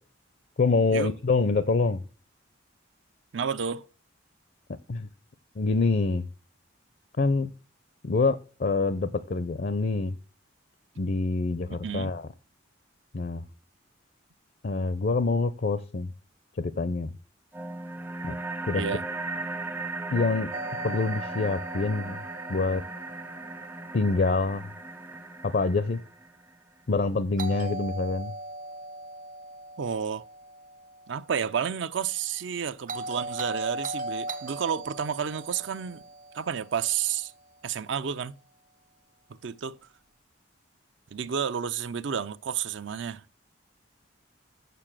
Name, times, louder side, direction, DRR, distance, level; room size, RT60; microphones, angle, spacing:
voice 1, 0.6-2.0 4.9-5.1 5.6-6.3 7.2-7.5 8.0-10.1 11.0-12.3 13.1-13.4 14.6-16.1 16.6-17.1 18.2-18.4 18.7-18.8 20.1-20.5 20.8-22.2 22.5-22.8 23.9-24.7 25.4-26.0 26.9-28.3, left 3 dB, 50° left, 0.5 m, -26 dB
voice 2, 3.3-3.9 11.7-12.1 18.7-19.0 29.8-30.3 31.1-36.0 36.3-37.3 37.6-38.3 39.4-39.8 41.1-43.2, right 7 dB, 65° right, 0.5 m, -31 dB
sound 1, 17.5-26.5, right 3 dB, 10° right, 0.4 m, -37 dB
Doorbell, 20.5-24.5 27.4-31.6 32.9-37.3, right 2 dB, 40° right, 0.8 m, -39 dB
6.8 x 6.6 x 7.4 m
head